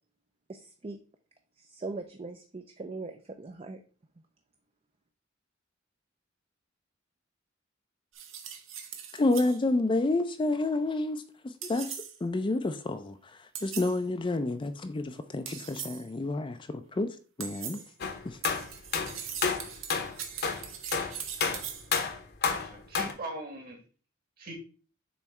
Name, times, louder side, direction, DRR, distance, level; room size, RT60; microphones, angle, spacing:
voice 1, 0.5-1.0 1.6-3.8, right 3 dB, 30° right, 0.5 m, -40 dB
sound 1, 8.1-9.6 11.6-12.2 13.5-14.0 15.5-16.1 17.4-17.9 18.4-21.9, right 8 dB, 75° right, 0.9 m, -40 dB
voice 2, 9.1-13.2 13.6-17.1 17.4-17.8 18.2-18.4, left 2 dB, 25° left, 0.4 m, -29 dB
sound 2, 18.0-23.1, left 5 dB, 55° left, 0.9 m, -30 dB
voice 3, 22.5-23.8 24.4-24.5, right 2 dB, 50° right, 1.9 m, -40 dB
7.0 x 3.1 x 4.4 m
head